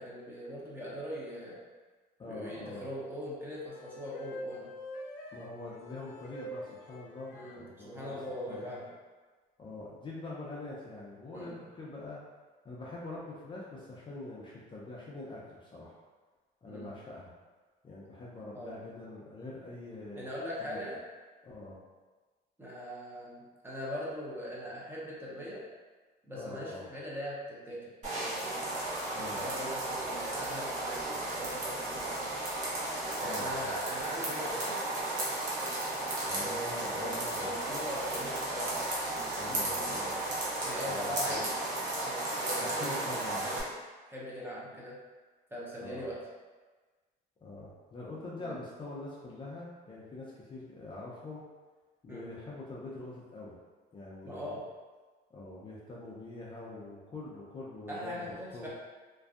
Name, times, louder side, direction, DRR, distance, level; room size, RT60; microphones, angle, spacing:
voice 1, 0.0-1.6 2.2-4.7 7.3-8.9 11.3-11.6 16.7-16.9 18.5-18.8 20.2-20.9 22.6-25.6 26.3-28.7 29.2-32.3 33.2-34.8 36.4-38.7 39.0-40.1 40.6-41.5 42.0-43.7 44.1-44.9 45.5-46.2 48.4-48.6 52.1-52.2 54.2-54.6 57.9-58.7, equal, 15° right, -6 dB, 0.7 m, -41 dB
voice 2, 2.2-2.9 5.3-8.2 8.5-8.8 9.6-12.2 12.6-16.0 16.6-17.3 17.8-20.3 20.6-20.8 21.4-21.8 26.3-26.9 29.1-29.4 33.2-33.8 36.2-37.5 39.4-40.2 40.9-41.4 42.6-43.5 45.8-46.1 47.4-51.4 52.0-53.6 53.9-54.6 55.3-58.2 58.5-58.7, left 2 dB, 30° left, -6 dB, 0.5 m, -44 dB
sound 1, 3.7-7.5 8.3-8.9, equal, 85° left, 0.4 m, -45 dB
sound 2, 28.0-43.6, right 2 dB, 45° right, 0.9 m, -34 dB
2.5 x 2.2 x 2.4 m, 1.3 s
cardioid pair, 110°, 17 cm